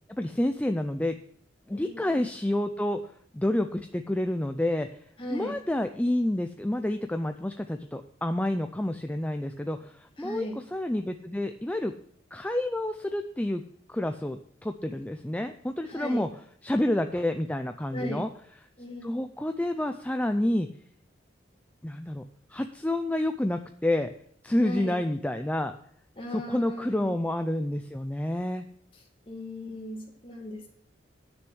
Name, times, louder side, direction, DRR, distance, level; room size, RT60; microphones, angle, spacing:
voice 1, 0.1-1.2 1.7-5.0 5.3-11.9 12.3-13.6 13.9-16.3 16.6-18.3 19.0-20.7 21.8-22.2 22.5-24.1 24.4-25.7 26.3-28.6, left 1 dB, 10° left, 7 dB, 0.4 m, -29 dB
voice 2, 1.7-2.0 5.2-5.6 10.2-10.6 15.9-16.2 17.9-18.2 18.8-19.3 24.6-25.0 26.2-27.1 29.3-30.7, left 1 dB, 25° left, 1 dB, 2.3 m, -37 dB
10.0 x 6.6 x 6.2 m, 0.65 s
head